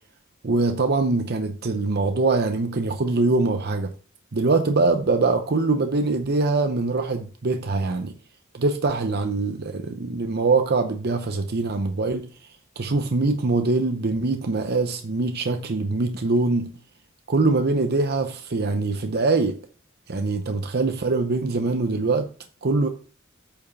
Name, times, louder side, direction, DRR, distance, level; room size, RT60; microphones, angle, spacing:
voice 1, 0.4-3.9 4.3-8.1 8.5-12.3 12.8-16.7 17.3-19.6 20.1-22.3 22.6-22.9, right 3 dB, 50° right, 0.7 m, -23 dB
8.8 x 5.6 x 4.1 m
head